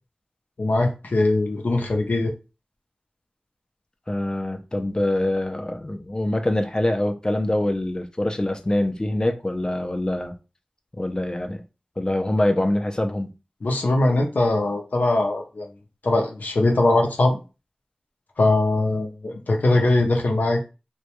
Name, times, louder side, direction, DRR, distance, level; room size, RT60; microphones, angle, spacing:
voice 1, 0.6-2.3 13.6-15.7 16.0-17.4 18.4-20.6, left 2 dB, 85° left, 0.5 m, -21 dB
voice 2, 4.1-10.3 11.0-11.6 12.0-13.3, left 1 dB, 25° left, 0.4 m, -24 dB
2.2 x 2.1 x 2.8 m
wide cardioid pair, 55°, 3 cm